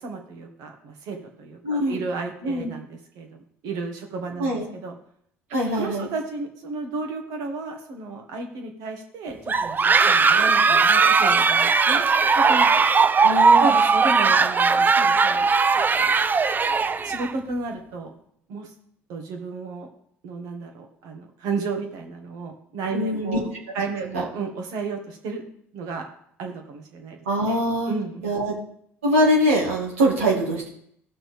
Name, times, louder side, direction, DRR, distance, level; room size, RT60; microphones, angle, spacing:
voice 1, 0.0-4.9 5.7-12.0 12.3-12.7 13.6-16.2 17.0-18.1 18.5-18.7 19.1-19.9 20.2-23.5 23.7-25.4 25.7-26.1 26.4-27.2 27.5-27.6 27.9-28.3, right 3 dB, 65° right, 3 dB, 1.7 m, -33 dB
voice 2, 1.6-2.0 2.4-2.7 4.4-4.6 5.5-6.1 13.2-13.6 22.9-23.4 27.3-27.9 28.2-28.5 29.0-30.7, equal, 85° right, -3 dB, 2.1 m, -22 dB
sound 1, 9.5-17.3, right 5 dB, 25° right, 0.5 m, -18 dB
15.5 x 6.0 x 3.5 m, 0.68 s
hypercardioid pair, 60°, 7 cm